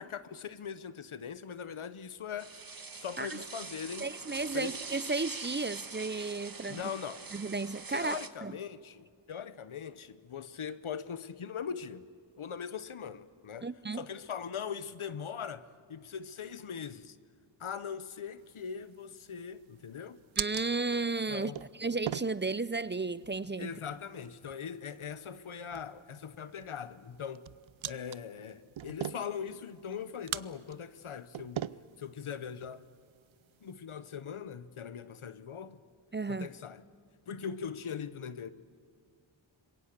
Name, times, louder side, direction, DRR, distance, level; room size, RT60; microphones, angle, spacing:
voice 1, 0.0-2.5 3.0-4.1 4.5-4.7 6.7-7.2 7.9-12.0 12.4-17.2 17.6-20.2 21.3-21.6 23.6-27.5 27.8-31.7 32.0-32.8 33.6-35.8 36.3-36.8 37.3-38.5, left 7 dB, 90° left, 1.0 m, -41 dB
sound 1, 2.4-8.3, right 4 dB, 45° right, 1.5 m, -44 dB
voice 2, 4.0-6.8 7.3-8.5 13.6-14.1 20.4-21.5 21.8-23.7 36.1-36.5, right 3 dB, 25° right, 0.5 m, -33 dB
sound 2, 18.4-33.7, right 11 dB, 75° right, 0.6 m, -44 dB
26.5 x 22.5 x 6.6 m
wide cardioid pair, 50°, 48 cm